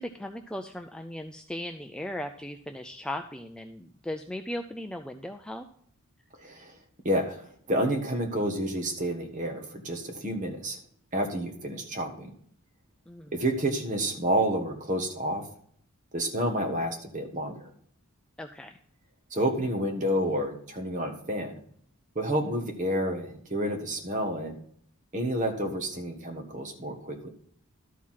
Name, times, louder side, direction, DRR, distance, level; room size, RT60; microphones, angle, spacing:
voice 1, 0.0-5.6 13.1-13.3 18.4-18.8, left 1 dB, 5° left, 5 dB, 0.3 m, -37 dB
voice 2, 6.4-6.8 7.0-10.8 11.1-12.3 13.3-15.5 16.1-17.6 19.3-21.6 22.1-24.6 25.1-27.3, right 1 dB, 35° right, 3 dB, 1.4 m, -29 dB
12.5 x 4.6 x 5.6 m, 0.63 s
head